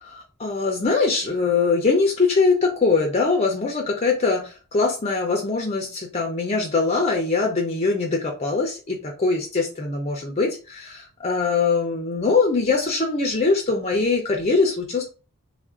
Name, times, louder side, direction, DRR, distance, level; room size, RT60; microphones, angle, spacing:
voice 1, 0.0-15.0, left 4 dB, 30° left, 2 dB, 0.5 m, -22 dB
3.5 x 2.5 x 3.6 m, 0.34 s
head